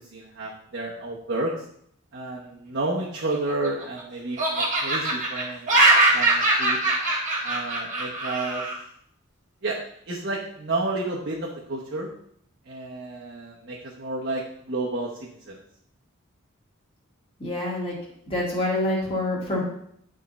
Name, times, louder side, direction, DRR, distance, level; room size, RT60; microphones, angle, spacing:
voice 1, 0.0-1.6 2.1-5.7 6.1-6.8 7.4-8.7 9.6-9.8 10.1-12.1 12.6-15.6, right 2 dB, 55° right, -4 dB, 1.0 m, -31 dB
Laughter, 3.2-4.0 4.4-8.8, right 2 dB, 35° right, 1.5 m, -22 dB
voice 2, 17.4-18.0 18.3-19.6, left 1 dB, 25° left, -4 dB, 2.1 m, -26 dB
9.1 x 3.7 x 4.1 m, 0.68 s
head